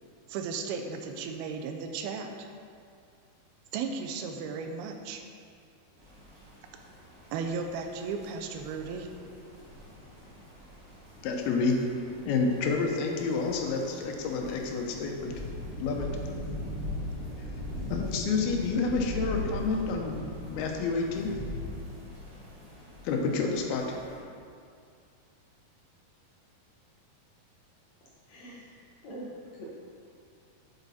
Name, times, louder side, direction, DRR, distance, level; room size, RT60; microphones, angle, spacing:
voice 1, 0.3-2.3 3.7-5.2 7.3-9.1, right 5 dB, 85° right, 5 dB, 2.5 m, -35 dB
sound 1, 6.0-24.2, left 1 dB, 35° right, 2.2 m, -41 dB
voice 2, 11.2-11.8 12.3-15.3 15.8-16.1 17.9-20.2 20.4-21.4 23.0-24.0, left 4 dB, 80° left, 2 dB, 2.7 m, -29 dB
voice 3, 28.3-28.8 29.0-29.7, right 1 dB, 65° left, -5 dB, 2.0 m, -43 dB
8.0 x 7.2 x 4.1 m, 2.3 s
omnidirectional pair, 4.4 m